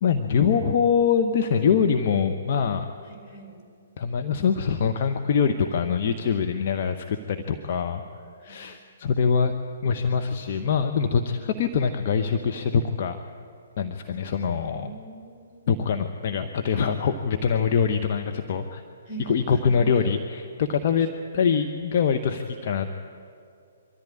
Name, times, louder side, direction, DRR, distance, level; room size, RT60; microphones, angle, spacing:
voice 1, 0.0-2.9 4.0-8.0 8.4-9.5 9.8-13.2 13.8-14.9 15.7-18.8 19.3-22.9, left 6 dB, 45° left, 6 dB, 1.0 m, -24 dB
voice 2, 3.0-3.6 7.7-7.9 8.4-8.7 14.1-15.8 19.1-20.2, right 4 dB, 25° left, 0 dB, 4.1 m, -42 dB
24.0 x 14.0 x 8.6 m, 2.5 s
figure-of-eight pair, 125°, 0 cm